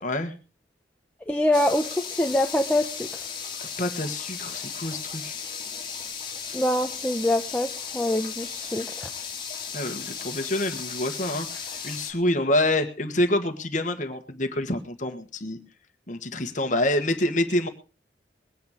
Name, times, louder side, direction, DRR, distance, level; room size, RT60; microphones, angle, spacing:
voice 1, 0.0-0.3 3.6-5.3 9.7-15.6 16.1-17.7, left 1 dB, 45° left, 7 dB, 1.5 m, -27 dB
voice 2, 1.3-3.2 6.5-9.1, left 1 dB, 10° left, 3 dB, 0.9 m, -25 dB
sound 1, 1.5-12.1, left 6 dB, 25° left, 2.8 m, -35 dB
20.5 x 9.3 x 5.0 m, 0.34 s
head